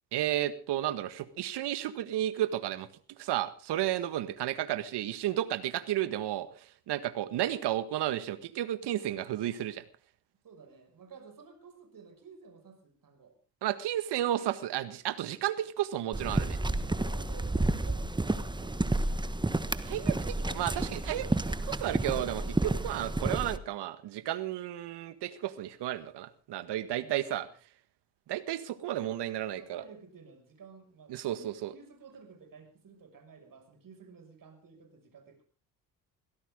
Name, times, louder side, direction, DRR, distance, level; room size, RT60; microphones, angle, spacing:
voice 1, 0.1-2.9 3.2-6.5 6.9-9.8 13.6-16.6 19.9-21.3 21.6-27.5 28.3-29.8 31.1-31.7, right 12 dB, 65° right, 13 dB, 1.7 m, -32 dB
voice 2, 10.4-13.4 16.8-19.7 27.0-27.5 29.6-35.4, right 5 dB, 45° right, 7 dB, 6.2 m, -53 dB
sound 1, 16.1-23.6, right 2 dB, 10° right, 1.3 m, -30 dB
23.0 x 16.5 x 3.7 m, 0.36 s
hypercardioid pair, 55°, 44 cm